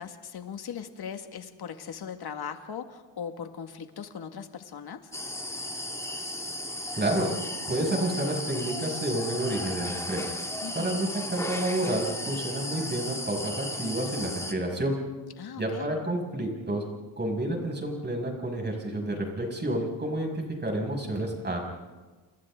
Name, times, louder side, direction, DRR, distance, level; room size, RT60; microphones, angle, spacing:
voice 1, 0.0-5.1 10.6-11.0 15.4-16.0, left 7 dB, 55° left, 6 dB, 2.1 m, -39 dB
sound 1, 5.1-14.5, left 1 dB, 5° left, 2.1 m, -35 dB
voice 2, 7.0-7.3 7.7-10.3 10.7-15.0 15.6-16.8 17.2-21.6, right 1 dB, 20° right, 1 dB, 6.2 m, -30 dB
29.5 x 29.0 x 3.8 m, 1.3 s
cardioid pair, 120°, 47 cm